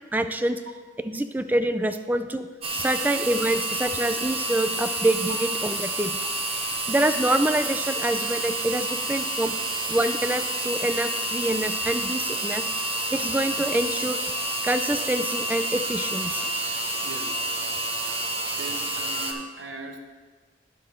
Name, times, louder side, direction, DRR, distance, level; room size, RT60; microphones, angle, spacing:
voice 1, 0.1-0.6 1.0-6.2 6.9-9.6 9.9-12.6 13.1-14.2 14.6-16.4, right 1 dB, 10° right, 8 dB, 0.3 m, -26 dB
sound 1, 2.6-19.3, right 1 dB, 35° right, 0.7 m, -29 dB
voice 2, 16.6-17.5 18.1-20.0, right 2 dB, 85° right, 4 dB, 0.9 m, -41 dB
9.9 x 3.7 x 6.4 m, 1.4 s
head